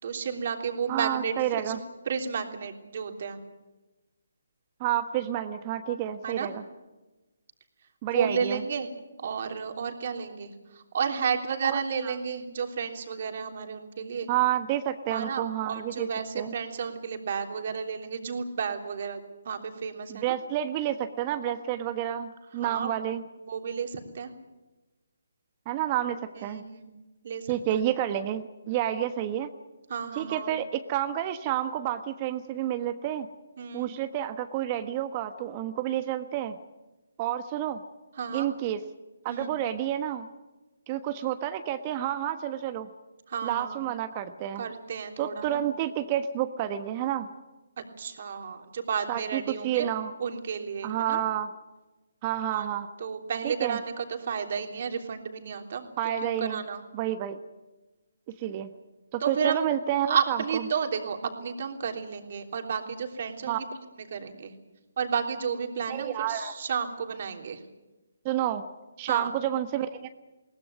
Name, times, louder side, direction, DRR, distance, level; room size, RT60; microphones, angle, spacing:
voice 1, 0.0-3.4 6.2-6.5 8.1-8.9 9.2-14.3 15.1-19.2 19.4-20.3 22.6-22.9 23.4-24.3 26.3-27.0 27.2-27.8 29.9-30.5 33.6-33.9 38.2-38.5 39.3-39.6 43.3-43.8 44.6-45.6 47.8-49.9 50.2-51.2 52.5-52.7 53.0-55.9 56.2-56.8 59.2-59.6 60.0-63.7 64.0-64.5 65.0-67.6 69.1-69.3, right 6 dB, 50° right, 5 dB, 3.3 m, -32 dB
voice 2, 0.9-1.8 4.8-6.6 8.0-8.6 11.6-12.1 14.3-16.1 16.3-16.5 20.1-23.2 25.7-26.6 27.5-29.5 30.1-33.3 33.7-36.6 37.2-37.8 38.3-38.8 39.2-40.3 40.9-42.9 43.4-44.6 45.2-47.3 49.1-50.1 50.8-51.5 52.2-52.9 53.4-53.8 56.0-56.6 56.9-57.4 58.4-58.7 59.1-60.6 63.5-63.6 65.9-66.5 68.2-68.6 69.0-70.1, right 11 dB, 30° right, 10 dB, 1.2 m, -29 dB
22.0 x 18.5 x 9.5 m, 1.1 s
figure-of-eight pair, 145°, 0 cm